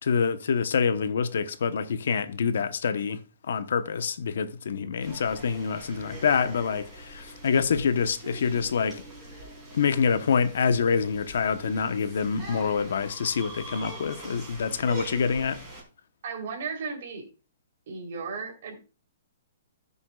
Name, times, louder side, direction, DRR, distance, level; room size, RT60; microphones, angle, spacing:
voice 1, 0.0-3.2 3.5-9.0 9.7-15.6, left 6 dB, 65° left, 0.9 m, -26 dB
sound 1, 5.0-15.8, right 1 dB, 5° right, 4.0 m, -43 dB
voice 2, 16.2-17.2 17.9-18.8, right 5 dB, 45° right, 3.4 m, -35 dB
16.0 x 7.0 x 2.3 m
hypercardioid pair, 175°, 0 cm